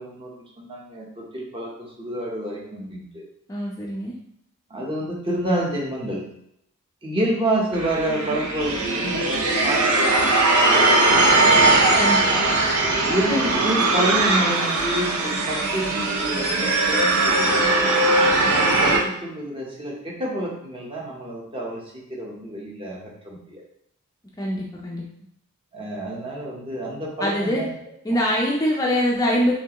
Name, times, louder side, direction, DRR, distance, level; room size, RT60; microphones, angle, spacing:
voice 1, 0.0-3.2 4.7-6.2 7.0-10.9 11.1-11.3 13.0-17.8 18.5-21.8 22.1-23.6 25.7-27.7 28.1-28.2, right 1 dB, 25° right, -3 dB, 0.9 m, -28 dB
voice 2, 3.5-4.2 12.0-12.4 24.4-25.0 27.2-27.7 28.0-29.5, equal, 15° left, -3 dB, 0.4 m, -23 dB
sound 1, 7.7-19.0, right 2 dB, 75° right, 0.7 m, -20 dB
4.5 x 3.3 x 2.9 m, 0.75 s
head